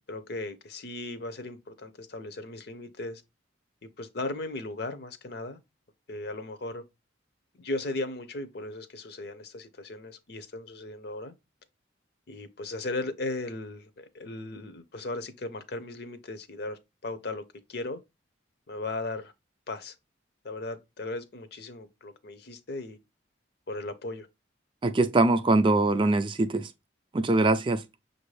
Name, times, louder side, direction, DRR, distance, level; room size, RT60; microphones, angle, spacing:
voice 1, 0.1-3.2 3.8-5.6 6.1-6.8 7.6-11.3 12.3-17.4 17.7-18.0 18.7-19.3 19.7-19.9 20.4-23.0 23.7-24.3, left 2 dB, 55° left, 0.6 m, -37 dB
voice 2, 24.8-26.7 27.1-27.8, right 2 dB, 25° right, 0.3 m, -23 dB
6.5 x 2.6 x 3.1 m
head